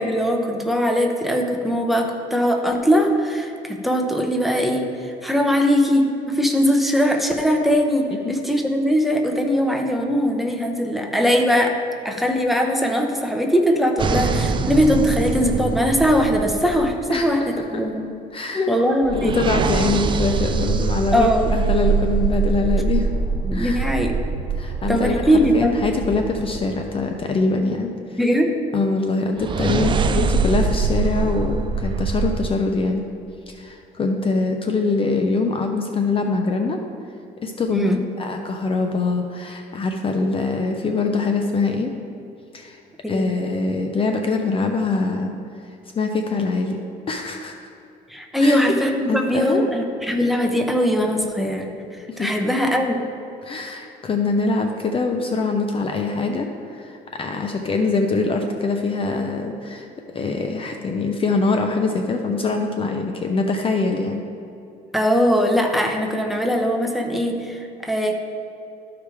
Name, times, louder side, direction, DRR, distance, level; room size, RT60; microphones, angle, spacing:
voice 1, 0.0-11.8 12.0-18.1 18.7-19.4 21.1-21.6 23.4-24.1 24.9-25.7 28.2-28.5 37.7-38.0 43.0-43.3 48.1-51.7 52.2-53.0 64.9-68.1, equal, ahead, 2 dB, 0.9 m, -20 dB
sound 1, 14.0-17.5 19.0-27.0 29.4-32.5, right 5 dB, 30° right, 0.4 m, -24 dB
voice 2, 17.1-17.8 18.3-18.7 19.1-23.1 23.5-23.8 24.6-28.2 28.7-33.1 33.5-36.8 37.4-37.9 38.2-41.9 42.5-42.8 43.1-45.3 46.0-47.7 48.4-48.7 49.1-49.7 52.1-52.3 53.4-59.9 60.1-64.2, left 3 dB, 35° left, 4 dB, 0.6 m, -23 dB
13.0 x 4.9 x 3.5 m, 2.7 s
cardioid pair, 110°, 17 cm